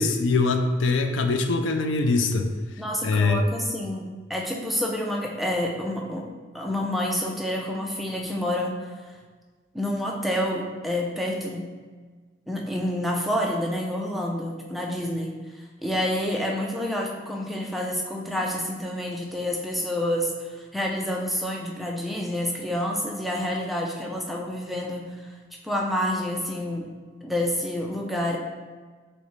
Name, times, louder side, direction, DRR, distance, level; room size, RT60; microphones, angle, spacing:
voice 1, 0.0-2.5 3.0-3.4, left 3 dB, 90° left, 6 dB, 0.4 m, -22 dB
voice 2, 2.8-9.1 9.7-11.7 12.5-25.3 25.6-26.9 27.2-28.4, left 1 dB, ahead, -1 dB, 0.4 m, -28 dB
6.4 x 2.1 x 3.1 m, 1.5 s
head